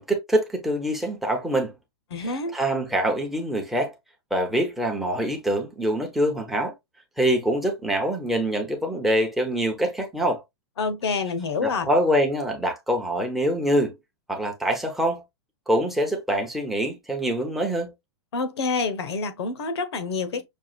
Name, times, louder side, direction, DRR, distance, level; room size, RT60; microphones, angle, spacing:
voice 1, 0.0-1.7 2.5-3.9 4.3-6.7 7.2-10.4 11.6-14.0 14.3-15.2 15.7-17.9, equal, ahead, 0.7 m, -24 dB
voice 2, 2.1-2.6 10.8-11.9 18.3-20.5, left 4 dB, 75° left, 1.0 m, -27 dB
6.2 x 2.4 x 2.3 m
hypercardioid pair, 160°, 14 cm